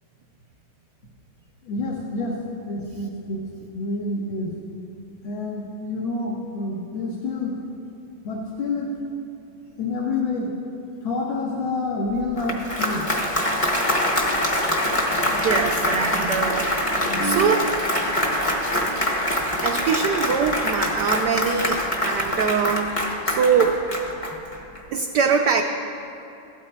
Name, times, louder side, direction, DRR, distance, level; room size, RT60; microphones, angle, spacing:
voice 1, 1.7-2.4 2.7-3.4 3.7-4.5 5.2-7.5 8.2-8.9 9.8-10.5 11.0-13.0 17.1-17.7, left 2 dB, 80° left, -3 dB, 1.9 m, -28 dB
Applause, 12.2-24.8, left 1 dB, 25° left, 0.7 m, -24 dB
voice 2, 15.3-16.8 17.2-17.7 19.6-23.8 24.9-25.6, right 6 dB, 70° right, 3 dB, 1.1 m, -23 dB
15.5 x 13.0 x 2.2 m, 2.8 s
omnidirectional pair, 2.2 m